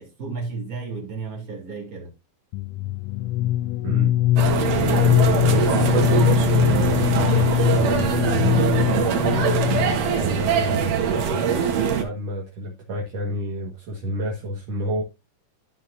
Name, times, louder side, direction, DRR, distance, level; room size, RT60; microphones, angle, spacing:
voice 1, 0.0-2.1, right 4 dB, 25° right, 3.5 m, -33 dB
sound 1, 2.5-10.2, left 13 dB, 90° left, 1.5 m, -21 dB
sound 2, 4.4-12.0, right 7 dB, 80° right, 3.2 m, -22 dB
voice 2, 5.4-9.5 10.2-11.7 11.9-15.0, right 2 dB, 55° right, 2.5 m, -29 dB
14.0 x 5.9 x 2.7 m
omnidirectional pair, 3.7 m